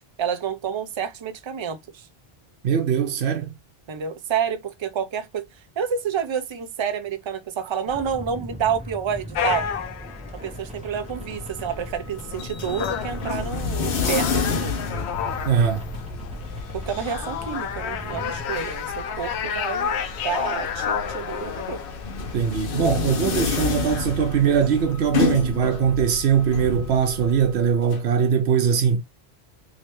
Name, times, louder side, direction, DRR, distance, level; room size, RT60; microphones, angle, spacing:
voice 1, 0.2-2.1 3.9-5.5 5.8-9.7 10.4-15.1 16.7-19.9 20.2-21.8, right 7 dB, 40° right, 0.4 m, -29 dB
voice 2, 2.6-3.5 15.3-15.9 22.3-29.0, right 7 dB, 80° right, 1.0 m, -21 dB
sound 1, 7.9-18.4, equal, 5° right, 0.7 m, -39 dB
sound 2, 9.3-24.9, left 8 dB, 90° left, 0.9 m, -32 dB
sound 3, 10.9-28.0, left 5 dB, 60° left, 0.9 m, -30 dB
3.2 x 3.0 x 2.9 m
omnidirectional pair, 1.1 m